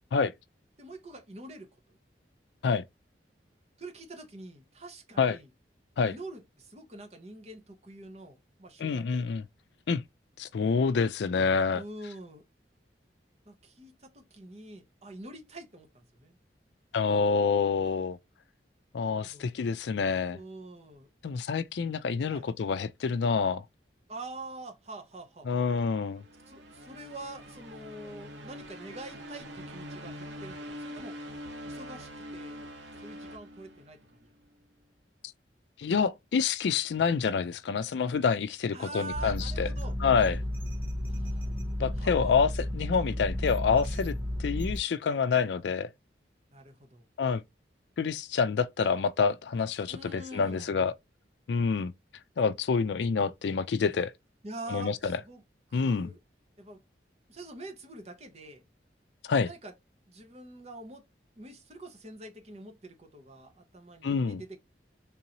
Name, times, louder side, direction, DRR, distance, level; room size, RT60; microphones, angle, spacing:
voice 1, 0.8-2.0 3.8-5.5 6.0-9.2 11.7-12.4 13.4-16.4 19.2-19.7 20.3-21.1 22.3-22.5 24.1-25.5 26.5-31.2 31.7-32.6 33.0-34.3 38.7-40.0 41.0-42.3 46.5-47.1 49.9-50.8 54.4-55.4 55.7-56.2 56.6-56.8 57.3-58.6 59.4-59.7 60.1-61.0 61.4-64.6, right 2 dB, 35° right, 1.0 m, -45 dB
voice 2, 8.8-9.4 9.9-10.0 10.4-11.8 16.9-18.2 18.9-20.4 21.2-23.6 25.5-26.2 35.8-39.7 40.0-40.4 41.8-44.1 44.4-45.9 47.2-47.4 48.0-50.9 51.5-51.9 52.4-54.1 54.7-55.2 55.7-56.1 59.2-59.5 64.0-64.4, left 5 dB, 75° left, 0.4 m, -27 dB
sound 1, 26.0-34.3, equal, 80° right, 1.0 m, -44 dB
sound 2, 39.1-44.8, left 1 dB, 10° right, 0.7 m, -33 dB
3.7 x 2.7 x 2.8 m
head